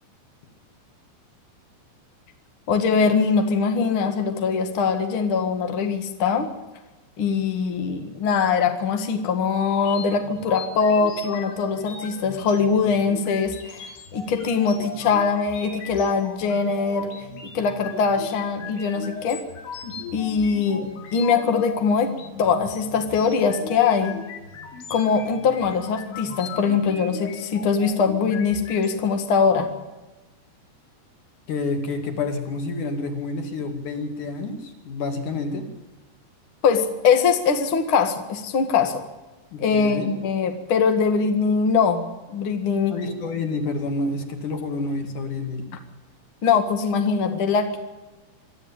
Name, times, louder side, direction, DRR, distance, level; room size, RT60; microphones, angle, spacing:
voice 1, 2.7-6.5 7.2-17.1 17.5-19.4 20.1-22.1 22.4-24.1 24.9-29.7 36.6-39.0 39.6-42.9 46.4-47.8, left 5 dB, 70° left, 6 dB, 1.2 m, -22 dB
sound 1, 9.7-28.9, left 4 dB, 85° left, 5.2 m, -38 dB
voice 2, 31.5-35.7 39.5-40.1 42.9-45.6, left 3 dB, 50° left, 5 dB, 3.3 m, -28 dB
25.0 x 13.5 x 8.8 m, 1.1 s
omnidirectional pair, 5.2 m